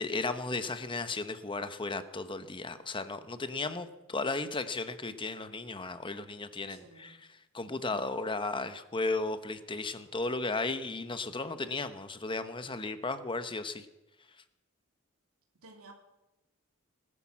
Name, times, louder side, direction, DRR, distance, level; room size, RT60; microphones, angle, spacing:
voice 1, 0.0-7.2 7.5-13.9, left 3 dB, 25° left, 10 dB, 1.0 m, -35 dB
voice 2, 6.7-7.2 15.5-15.9, right 3 dB, 80° right, 2 dB, 2.9 m, -54 dB
19.0 x 10.5 x 7.3 m, 0.99 s
head